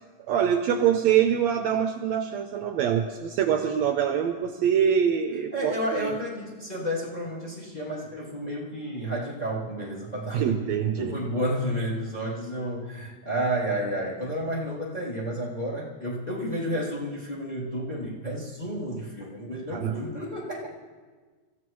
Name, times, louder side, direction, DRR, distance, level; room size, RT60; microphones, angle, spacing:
voice 1, 0.3-6.2 10.3-11.2 19.7-20.0, right 8 dB, 75° right, 6 dB, 1.8 m, -24 dB
voice 2, 5.5-10.6 10.9-20.7, equal, 15° left, -4 dB, 2.4 m, -31 dB
26.5 x 15.0 x 3.1 m, 1.4 s
omnidirectional pair, 3.5 m